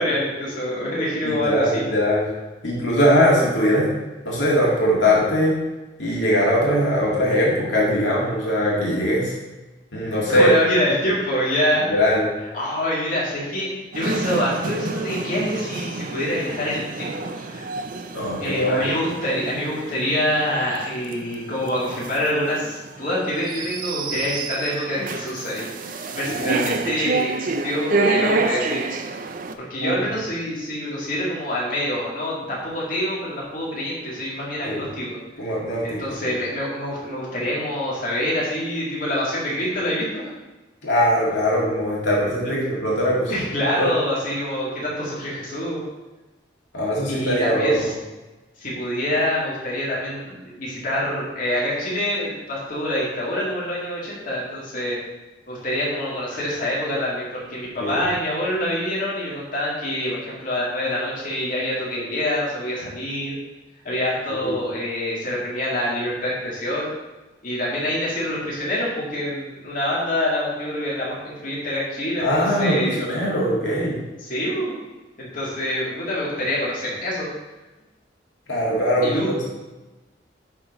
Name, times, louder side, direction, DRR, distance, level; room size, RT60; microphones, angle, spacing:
voice 1, 0.0-1.8 10.3-11.9 12.5-17.7 18.4-28.8 29.7-35.2 35.8-40.3 43.3-45.8 47.1-47.9 48.6-55.0 55.5-63.4 63.8-66.9 67.4-73.0 74.2-74.7 75.2-77.3 79.0-79.3, left 1 dB, 50° left, -6 dB, 2.1 m, -26 dB
voice 2, 1.2-2.3 2.6-3.9 4.3-5.6 6.0-9.3 9.9-10.5 11.9-12.2 18.1-18.8 26.3-26.7 29.8-29.9 34.6-34.9 35.4-36.1 40.8-43.3 43.7-43.9 46.7-47.9 57.8-58.0 64.3-64.6 72.2-74.0 78.5-79.4, equal, 90° left, -5 dB, 2.0 m, -21 dB
sound 1, 13.9-29.5, right 3 dB, 50° right, 0.5 m, -29 dB
11.0 x 3.7 x 4.0 m, 1.1 s
head